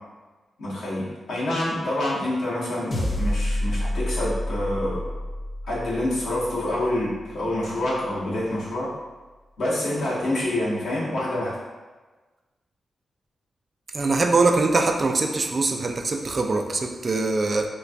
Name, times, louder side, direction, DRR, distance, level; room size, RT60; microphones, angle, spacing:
voice 1, 0.6-5.1 5.7-8.9 9.6-11.6, left 1 dB, 85° left, -7 dB, 1.1 m, -27 dB
sound 1, 2.9-7.5, left 1 dB, 50° left, 0.6 m, -29 dB
voice 2, 13.9-17.7, right 3 dB, 50° right, 3 dB, 0.4 m, -22 dB
3.3 x 3.0 x 2.5 m, 1.3 s
cardioid pair, 55°, 0 cm